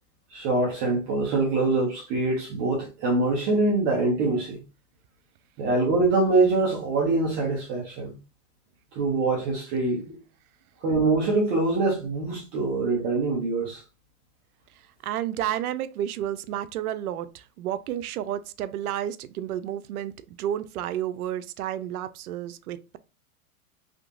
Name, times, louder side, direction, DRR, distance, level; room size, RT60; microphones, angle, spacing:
voice 1, 0.3-4.6 5.6-8.2 8.9-10.2 10.8-13.8, right 3 dB, 20° right, 0.5 m, -24 dB
voice 2, 14.7-23.0, right 11 dB, 85° right, 0.6 m, -31 dB
3.6 x 2.8 x 2.5 m
supercardioid pair, 160°, 43 cm